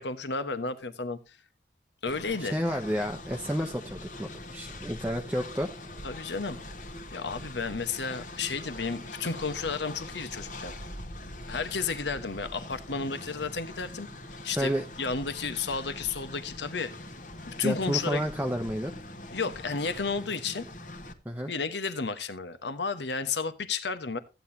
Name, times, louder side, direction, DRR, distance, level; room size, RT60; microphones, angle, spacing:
voice 1, 0.0-1.4 2.0-2.5 6.0-6.6 7.1-10.7 11.5-14.7 15.0-16.9 17.5-18.2 19.3-20.6 21.5-24.2, left 4 dB, 85° left, 1.2 m, -32 dB
Train, 2.1-21.1, left 1 dB, 45° left, 1.3 m, -43 dB
voice 2, 2.4-5.7 14.6-14.8 17.6-18.9 21.2-21.5, equal, 10° right, 0.7 m, -30 dB
15.0 x 9.3 x 2.8 m
head